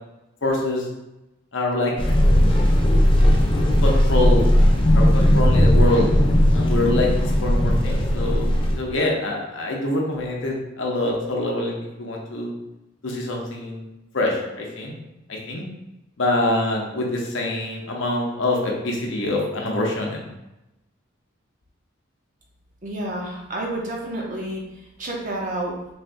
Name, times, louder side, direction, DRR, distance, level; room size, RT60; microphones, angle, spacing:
voice 1, 0.4-0.9 1.5-2.1 2.3-2.5 3.8-4.5 4.9-6.1 6.5-12.5 13.0-15.0 15.3-15.6 16.2-20.3, left 2 dB, 70° left, -1 dB, 0.7 m, -25 dB
sound 1, 2.0-8.7, equal, 25° left, 0.4 m, -17 dB
voice 2, 22.8-24.6 25.0-25.7, right 1 dB, 40° right, -2 dB, 0.7 m, -29 dB
3.5 x 3.3 x 2.5 m, 0.94 s
head